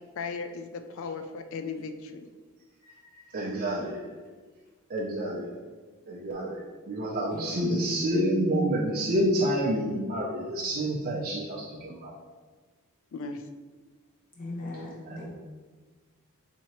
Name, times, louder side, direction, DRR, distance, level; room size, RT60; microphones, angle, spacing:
voice 1, 0.2-2.3 13.1-13.4, left 4 dB, 60° left, 8 dB, 0.3 m, -36 dB
voice 2, 2.9-4.1 4.9-5.5 6.1-12.1 15.1-15.3, right 1 dB, 40° right, -5 dB, 0.4 m, -29 dB
voice 3, 7.3-7.9 14.4-15.3, left 1 dB, 40° left, -4 dB, 0.9 m, -39 dB
4.3 x 2.8 x 2.9 m, 1.4 s
head